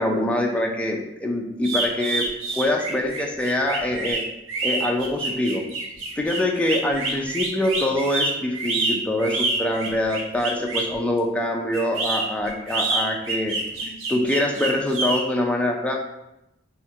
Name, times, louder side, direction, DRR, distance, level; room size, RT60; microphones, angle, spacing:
voice 1, 0.0-2.3 2.5-4.2 4.6-5.6 6.2-13.6 13.8-16.0, left 1 dB, 5° left, 0 dB, 0.3 m, -24 dB
sound 1, 1.6-10.9 11.7-15.2, right 3 dB, 85° right, 0.7 m, -27 dB
2.8 x 2.4 x 4.2 m, 0.88 s
head